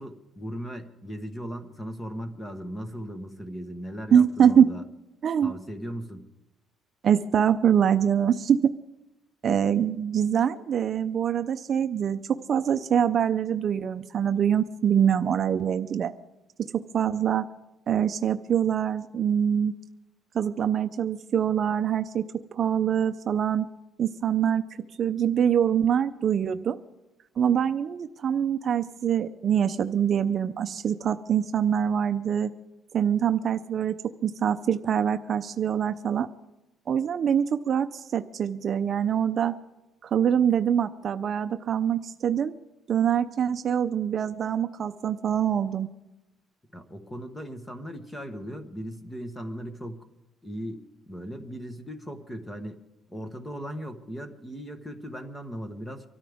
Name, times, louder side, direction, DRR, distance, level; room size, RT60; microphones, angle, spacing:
voice 1, 0.0-4.8 5.4-6.3 46.7-50.0 50.4-52.8 53.1-56.1, equal, 10° left, 8 dB, 1.3 m, -38 dB
voice 2, 4.1-4.7 5.2-5.5 7.0-8.6 9.4-12.2 12.5-16.1 16.6-17.5 17.9-19.7 20.3-22.2 22.5-23.7 24.0-24.6 25.0-26.8 27.4-32.5 32.9-34.0 34.2-36.3 36.9-39.5 40.0-42.5 42.9-45.9, right 8 dB, 40° right, 9 dB, 0.5 m, -24 dB
24.5 x 13.5 x 3.5 m, 0.96 s
cardioid pair, 155°, 0 cm